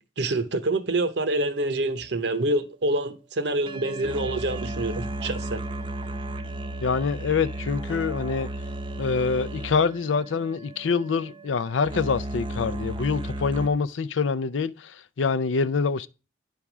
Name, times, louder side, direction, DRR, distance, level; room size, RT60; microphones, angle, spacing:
voice 1, 0.2-5.6, right 2 dB, 65° right, 0.9 m, -26 dB
sound 1, 2.0-2.1 3.7-13.7, right 1 dB, 25° right, 0.6 m, -34 dB
voice 2, 6.8-8.5 9.0-16.1, left 5 dB, 90° left, 0.5 m, -25 dB
9.7 x 3.5 x 6.0 m
head